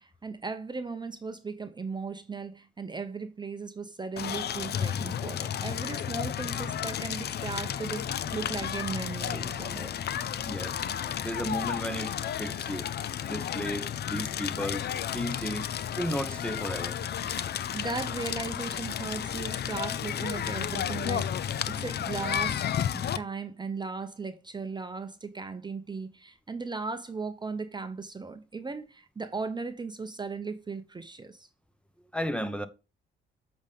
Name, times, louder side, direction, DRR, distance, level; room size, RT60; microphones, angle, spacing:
voice 1, 0.0-9.9 17.4-22.6 22.9-31.5, right 4 dB, 20° right, 0.7 m, -37 dB
Crackle, 4.2-23.2, left 9 dB, 55° left, 0.6 m, -32 dB
voice 2, 10.4-10.8 11.2-12.9 13.3-15.7 16.0-17.0 32.1-32.7, equal, 5° left, 0.9 m, -34 dB
8.0 x 5.3 x 3.5 m
cardioid pair, 90°, 20 cm